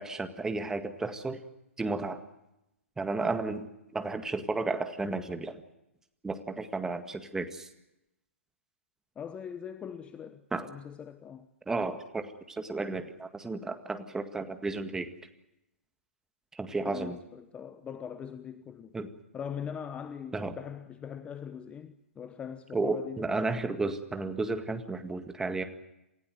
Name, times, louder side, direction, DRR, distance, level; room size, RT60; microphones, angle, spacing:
voice 1, 0.0-1.4 1.8-2.2 3.0-5.6 6.2-7.7 10.5-10.7 11.7-15.1 16.5-17.2 18.9-19.1 20.3-20.6 22.7-25.6, right 3 dB, 5° right, 1.9 m, -33 dB
voice 2, 9.2-11.5 16.8-18.9 19.3-23.3, left 7 dB, 15° left, 1.0 m, -41 dB
28.5 x 16.0 x 9.4 m
figure-of-eight pair, 120°, 7 cm